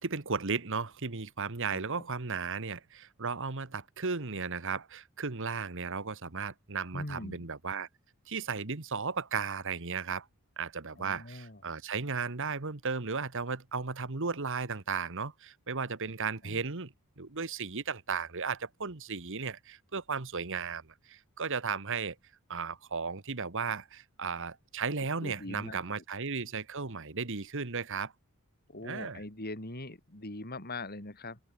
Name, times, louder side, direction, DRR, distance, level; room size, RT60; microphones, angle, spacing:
voice 1, 0.0-7.9 8.3-10.3 10.6-22.1 22.5-28.1 28.8-29.2, right 5 dB, 60° right, 1.5 m, -35 dB
voice 2, 6.9-7.5 11.0-11.6 16.4-16.6 25.2-26.0 28.7-31.4, left 2 dB, 45° left, 3.8 m, -42 dB
head